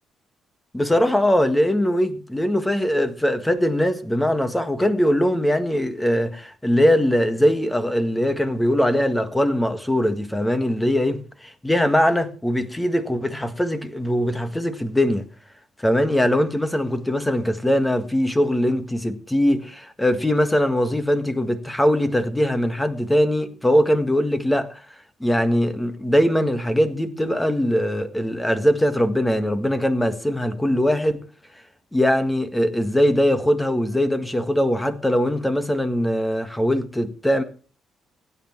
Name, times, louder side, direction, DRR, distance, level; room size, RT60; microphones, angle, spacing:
voice 1, 0.7-15.2 15.8-24.8 25.2-31.2 31.9-37.4, equal, 10° left, 1.7 m, -21 dB
16.0 x 9.6 x 4.5 m
cardioid pair, 90°, 0 cm